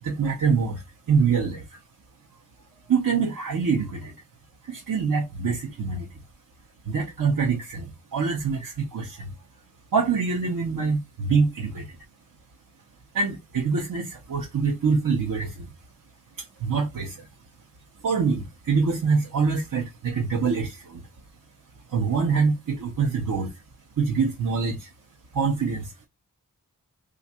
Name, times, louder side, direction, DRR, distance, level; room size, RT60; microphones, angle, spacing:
voice 1, 0.0-1.8 2.8-4.1 4.6-6.1 6.9-9.3 9.9-11.9 13.1-15.7 16.4-17.3 18.0-21.0 21.9-23.5 24.0-24.9 25.3-25.9, right 5 dB, 75° right, 0.8 m, -25 dB
2.5 x 2.4 x 4.1 m
wide cardioid pair, 60°, 35 cm